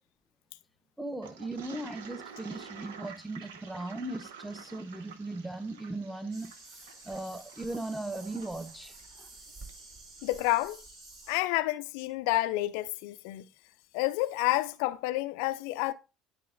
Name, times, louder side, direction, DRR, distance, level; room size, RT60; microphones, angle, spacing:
voice 1, 1.0-6.5 7.1-8.9, right 2 dB, ahead, 0.9 m, -38 dB
Toilet flush, 1.2-9.8, right 6 dB, 70° right, 0.9 m, -50 dB
sound 1, 6.3-11.4, right 3 dB, 50° right, 3.1 m, -50 dB
voice 2, 10.2-10.8 11.3-13.5 13.9-15.9, left 18 dB, 65° left, 0.4 m, -29 dB
11.5 x 4.8 x 2.5 m
figure-of-eight pair, 65°, 0 cm